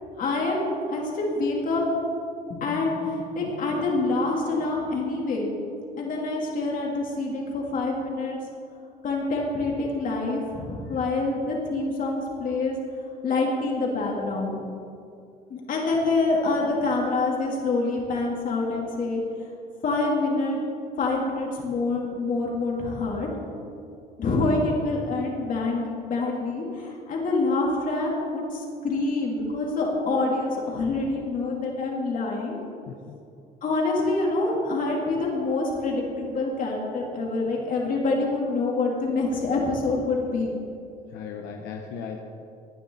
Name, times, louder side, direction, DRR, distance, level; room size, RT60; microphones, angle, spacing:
voice 1, 0.2-1.8 2.5-5.5 6.0-8.4 9.0-12.8 13.2-14.6 15.5-19.5 19.8-20.6 21.0-23.3 24.2-32.6 33.6-40.5, left 3 dB, 55° left, -2 dB, 3.4 m, -26 dB
voice 2, 32.9-33.2 41.1-42.2, left 6 dB, 85° left, 2 dB, 1.0 m, -37 dB
18.0 x 10.0 x 4.2 m, 2.5 s
cardioid pair, 110°, 17 cm